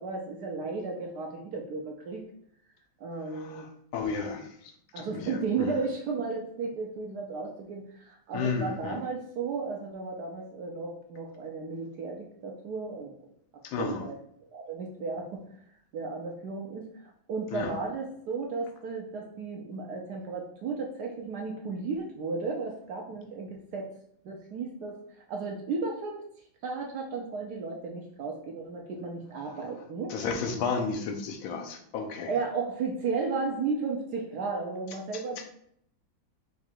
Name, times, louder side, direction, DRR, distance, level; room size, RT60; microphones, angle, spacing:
voice 1, 0.0-2.3 3.0-3.7 4.9-13.1 13.8-14.1 14.5-15.4 15.9-23.9 24.2-25.0 25.3-26.2 26.6-30.1 32.3-35.4, right 4 dB, 65° right, 1 dB, 1.1 m, -34 dB
voice 2, 3.3-3.7 3.9-5.8 8.3-9.0 13.6-14.1 17.5-17.7 30.1-32.3, left 5 dB, 85° left, 5 dB, 1.5 m, -33 dB
4.9 x 2.4 x 4.4 m, 0.68 s
omnidirectional pair, 2.2 m